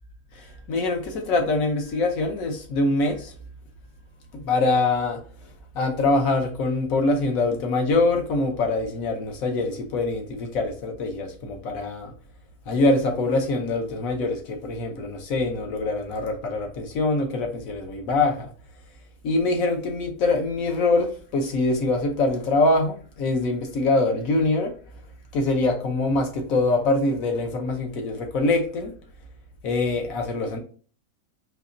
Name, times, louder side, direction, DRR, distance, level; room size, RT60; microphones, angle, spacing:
voice 1, 0.3-3.3 4.3-5.2 5.7-12.1 12.7-18.5 19.2-24.7 25.3-28.9 29.6-30.6, left 2 dB, 65° left, 1.2 m, -24 dB
4.1 x 2.8 x 2.6 m
omnidirectional pair, 1.6 m